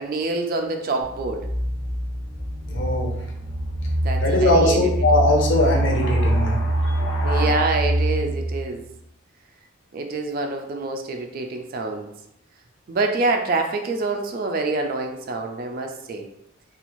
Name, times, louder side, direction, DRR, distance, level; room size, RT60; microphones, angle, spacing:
voice 1, 0.0-1.5 4.0-4.8 7.2-8.8 9.9-12.1 12.9-16.3, right 3 dB, 45° right, 4 dB, 0.3 m, -26 dB
sound 1, 1.0-8.9, right 1 dB, ahead, 0.7 m, -24 dB
voice 2, 2.7-3.1 4.2-7.6, left 1 dB, 60° left, 0 dB, 0.6 m, -21 dB
2.5 x 2.4 x 3.0 m, 0.77 s
head